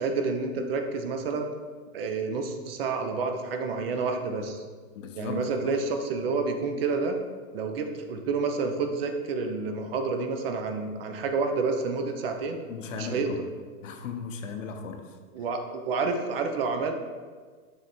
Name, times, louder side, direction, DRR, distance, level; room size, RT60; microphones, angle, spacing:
voice 1, 0.0-1.5 1.9-4.6 5.2-7.2 7.5-12.6 12.9-13.4 15.3-16.9, right 4 dB, 45° right, 5 dB, 0.6 m, -29 dB
voice 2, 4.9-5.8 12.7-13.4 13.8-15.4, left 5 dB, 65° left, 6 dB, 0.8 m, -37 dB
6.8 x 3.4 x 4.2 m, 1.5 s
hypercardioid pair, 155°, 42 cm